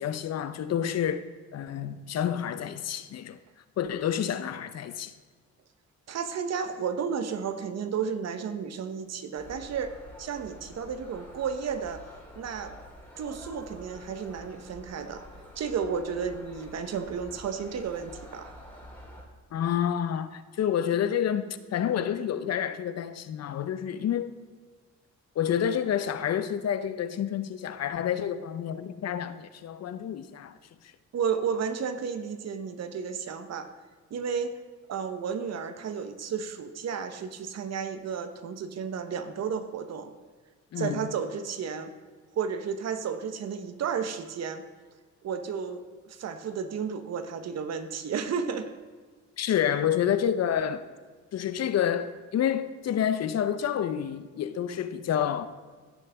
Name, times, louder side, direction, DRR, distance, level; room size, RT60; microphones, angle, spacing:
voice 1, 0.0-3.4 3.8-5.1 19.5-24.4 25.4-30.5 40.7-41.1 49.4-50.8 51.3-55.5, left 9 dB, 60° left, 0.7 m, -29 dB
voice 2, 6.1-12.1 12.4-12.8 13.2-15.2 15.6-18.5 31.1-33.7 34.1-34.5 34.9-40.1 40.8-41.9 42.3-44.6 45.2-48.7, right 6 dB, 60° right, 1.0 m, -32 dB
sound 1, 9.4-19.2, left 1 dB, 5° left, 2.8 m, -48 dB
16.0 x 6.5 x 3.5 m
cardioid pair, 90°, 30 cm